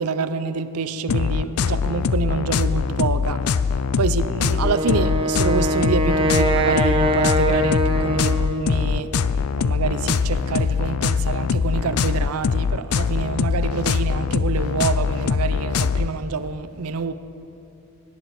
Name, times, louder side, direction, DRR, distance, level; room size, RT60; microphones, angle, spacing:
voice 1, 0.0-17.1, right 5 dB, 80° right, 0.6 m, -27 dB
sound 1, 1.1-16.1, left 5 dB, 80° left, 0.4 m, -22 dB
Wind instrument woodwind instrument, 4.6-8.9, right 1 dB, 25° right, 0.8 m, -22 dB
17.5 x 10.5 x 4.8 m
head